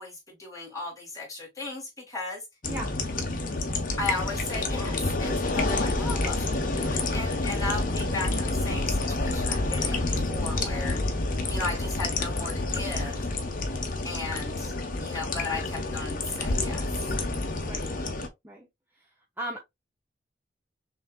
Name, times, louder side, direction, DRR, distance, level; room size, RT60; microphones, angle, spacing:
voice 1, 0.0-2.4 4.0-11.0 11.5-13.2 14.0-14.7 15.0-16.9, left 3 dB, 20° left, 2.2 m, -36 dB
sound 1, 2.6-18.3, left 2 dB, 50° left, 0.9 m, -28 dB
voice 2, 2.7-2.9 5.6-5.9 17.6-17.9 18.4-18.7 19.4-19.6, right 1 dB, 10° right, 0.7 m, -36 dB
6.2 x 2.7 x 2.3 m
head